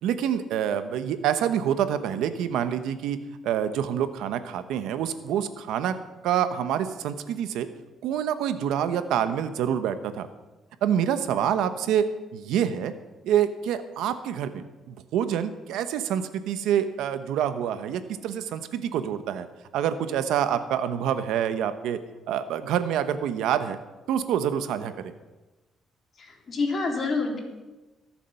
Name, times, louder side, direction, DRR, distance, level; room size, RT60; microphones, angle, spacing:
voice 1, 0.0-3.2 3.4-6.0 6.2-7.7 8.0-10.3 10.8-12.1 12.3-12.9 13.2-19.5 19.7-22.0 22.3-23.8 24.1-25.1, right 9 dB, 90° right, 11 dB, 0.9 m, -26 dB
voice 2, 26.2-27.4, left 3 dB, 50° left, 1 dB, 3.2 m, -27 dB
21.5 x 7.3 x 5.7 m, 1.1 s
cardioid pair, 90°, 0 cm